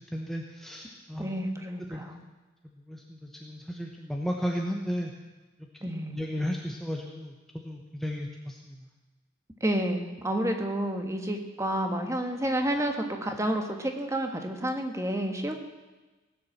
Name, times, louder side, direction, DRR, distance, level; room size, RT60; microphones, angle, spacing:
voice 1, 0.0-1.4 1.8-2.0 2.6-5.1 6.0-8.9, equal, ahead, 0 dB, 1.1 m, -34 dB
voice 2, 1.2-2.2 5.8-6.2 9.6-15.5, right 1 dB, 15° right, 4 dB, 1.6 m, -30 dB
18.5 x 10.0 x 7.3 m, 1.2 s
head